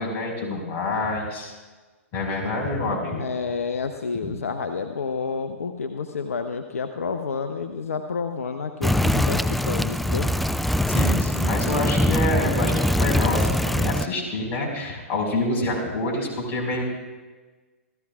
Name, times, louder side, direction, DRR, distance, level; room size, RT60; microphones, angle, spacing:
voice 1, 0.0-1.5 2.1-3.2 4.2-4.3 10.9-16.9, left 2 dB, 30° left, 0 dB, 5.0 m, -27 dB
voice 2, 3.2-10.3, left 5 dB, 75° left, 7 dB, 0.8 m, -29 dB
sound 1, 8.8-14.1, left 1 dB, ahead, 0.3 m, -22 dB
28.5 x 15.0 x 2.4 m, 1.3 s
figure-of-eight pair, 115°, 8 cm